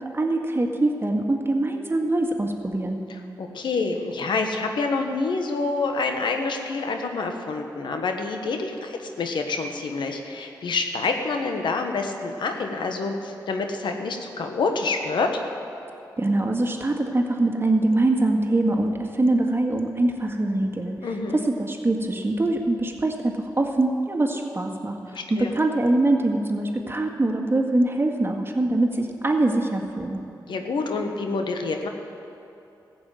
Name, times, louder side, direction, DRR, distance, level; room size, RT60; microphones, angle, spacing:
voice 1, 0.0-3.0 16.2-21.0 21.3-30.2, right 2 dB, 30° right, 3 dB, 1.9 m, -23 dB
voice 2, 3.1-15.4 21.0-21.4 25.1-25.5 30.5-31.9, left 3 dB, 75° left, 4 dB, 1.2 m, -27 dB
14.5 x 7.1 x 9.0 m, 2.8 s
supercardioid pair, 45°, 8 cm